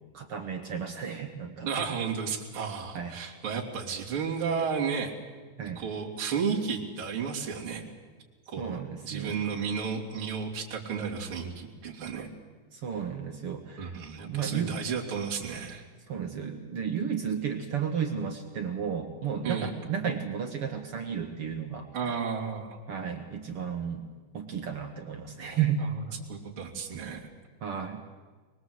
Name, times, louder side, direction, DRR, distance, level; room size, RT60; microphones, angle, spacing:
voice 1, 0.1-1.7 2.9-3.1 5.6-5.8 8.6-9.4 12.7-14.0 14.2-14.7 16.1-21.9 22.9-24.1 24.3-25.8 27.6-28.0, right 7 dB, 60° right, 4 dB, 1.6 m, -33 dB
voice 2, 1.6-5.1 5.6-7.8 8.5-12.3 13.8-15.8 19.4-19.7 21.9-22.8 25.8-25.9 26.3-27.3, right 6 dB, 35° right, -3 dB, 3.5 m, -33 dB
24.0 x 21.0 x 7.9 m, 1.4 s
omnidirectional pair, 4.4 m